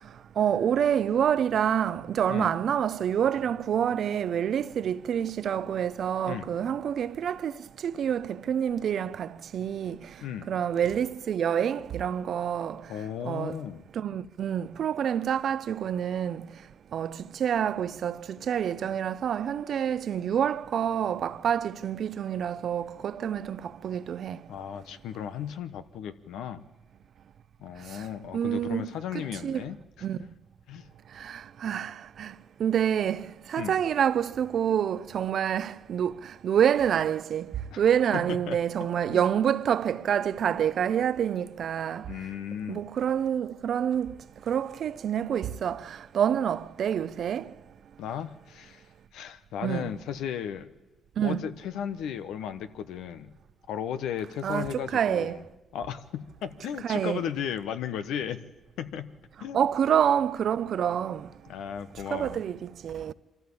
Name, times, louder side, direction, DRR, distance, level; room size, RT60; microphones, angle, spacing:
voice 1, 0.4-10.1 10.5-12.8 13.2-13.6 13.9-16.5 16.9-24.4 27.9-28.1 28.3-29.7 30.0-30.3 31.1-42.1 42.7-44.1 44.5-47.5 49.6-49.9 51.2-51.5 54.4-55.4 56.8-57.2 59.5-61.3 62.1-63.1, right 9 dB, 65° right, 0.7 m, -27 dB
voice 2, 2.3-2.6 6.3-6.6 10.2-10.5 12.9-13.8 24.5-26.7 27.6-29.8 30.7-30.9 33.6-33.8 37.7-37.8 38.1-38.6 39.1-39.2 42.1-42.8 48.0-48.8 49.1-50.7 51.2-53.3 53.7-55.4 55.7-58.4 58.8-59.1 59.4-59.7 61.5-62.4, left 9 dB, 85° left, 1.1 m, -35 dB
24.5 x 14.0 x 8.6 m
cardioid pair, 90°, 0 cm